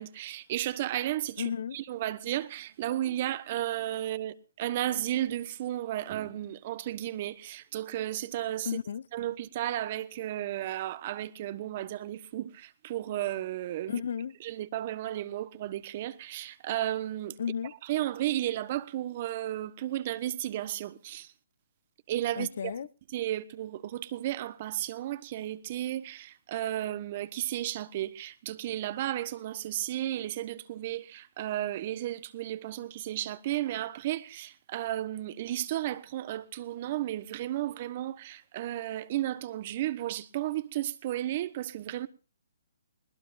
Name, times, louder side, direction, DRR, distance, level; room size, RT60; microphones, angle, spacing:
voice 1, 0.0-8.8 9.1-14.0 14.4-17.4 17.8-21.3 22.1-22.7 23.1-42.1, right 13 dB, 40° right, 1.1 m, -33 dB
voice 2, 1.4-1.8 8.6-9.0 13.9-14.3 17.4-17.7 22.4-22.9, left 7 dB, 60° left, 0.8 m, -33 dB
20.5 x 20.0 x 2.6 m
hypercardioid pair, 140°, 0 cm